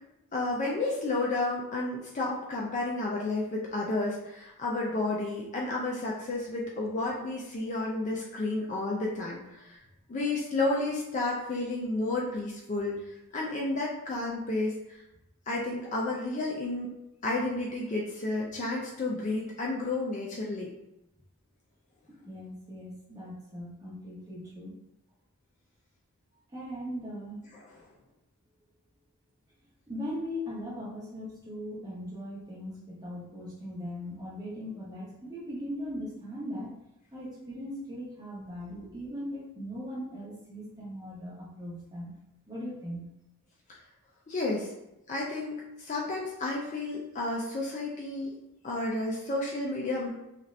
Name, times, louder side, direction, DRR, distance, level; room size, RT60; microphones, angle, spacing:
voice 1, 0.3-9.8 10.1-12.9 13.3-15.0 15.5-16.9 17.2-20.7 44.3-44.7 45.1-48.3 48.6-50.1, left 2 dB, 35° left, -3 dB, 0.4 m, -31 dB
voice 2, 22.1-24.8 26.5-27.4 29.9-36.7 37.1-42.1 42.5-43.0, equal, 15° right, -6 dB, 0.9 m, -39 dB
2.7 x 2.4 x 3.1 m, 0.89 s
head